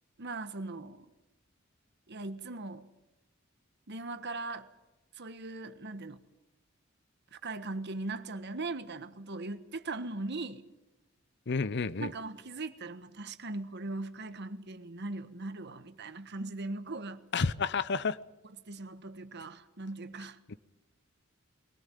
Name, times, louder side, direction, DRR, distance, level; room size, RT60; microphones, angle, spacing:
voice 1, 0.2-1.1 2.1-2.8 3.9-4.7 5.1-6.2 7.3-10.6 12.0-17.2 18.4-20.4, right 2 dB, 55° right, 1.4 m, -39 dB
voice 2, 11.5-12.1 17.3-18.2 20.5-20.6, left 4 dB, 55° left, 0.7 m, -30 dB
22.5 x 17.5 x 9.3 m
head